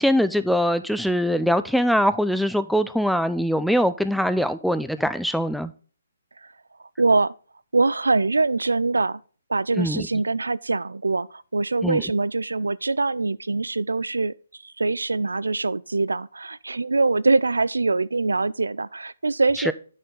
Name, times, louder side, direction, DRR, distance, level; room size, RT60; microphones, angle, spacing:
voice 1, 0.0-5.7 9.8-10.1 11.8-12.0 19.7-19.8, equal, ahead, 0.4 m, -22 dB
voice 2, 7.0-7.3 7.7-9.2 9.5-14.3 14.6-19.7, right 3 dB, 85° right, 0.3 m, -23 dB
8.9 x 6.3 x 3.9 m
figure-of-eight pair, 140°, 0 cm